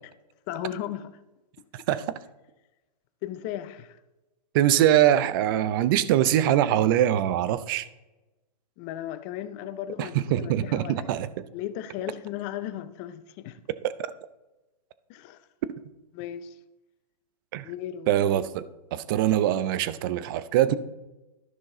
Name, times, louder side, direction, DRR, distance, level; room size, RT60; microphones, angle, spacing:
voice 1, 0.5-1.1 3.2-4.0 8.8-11.1 11.5-13.6 15.1-15.5 16.1-16.6 17.6-18.1, left 11 dB, 25° left, 0.5 m, -36 dB
voice 2, 1.7-2.1 4.5-7.9 10.0-11.5 13.8-13.9 17.5-17.7 18.1-18.7 18.9-20.7, right 12 dB, 30° right, 0.5 m, -23 dB
13.0 x 5.8 x 3.8 m
hypercardioid pair, 145°, 21 cm